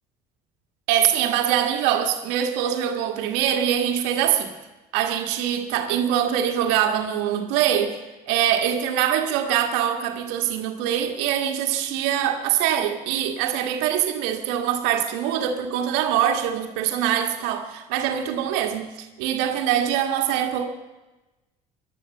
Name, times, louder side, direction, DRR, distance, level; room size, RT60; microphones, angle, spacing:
voice 1, 0.9-4.5 4.9-8.0 8.3-20.6, right 10 dB, 75° right, 1.7 m, -23 dB
17.0 x 11.5 x 7.1 m
hypercardioid pair, 75°, 18 cm